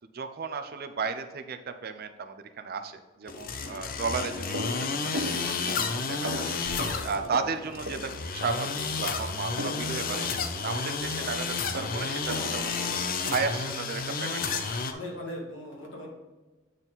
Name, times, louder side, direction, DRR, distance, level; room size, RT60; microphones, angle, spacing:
voice 1, 0.1-10.3 10.6-14.8, right 5 dB, 50° right, 8 dB, 0.5 m, -34 dB
sound 1, 3.3-14.9, left 5 dB, 45° left, 0.6 m, -31 dB
sound 2, 4.1-13.4, equal, 70° right, 1.0 m, -39 dB
voice 2, 14.9-16.1, left 1 dB, 65° left, -2 dB, 2.1 m, -39 dB
8.9 x 4.2 x 3.9 m, 1.2 s
head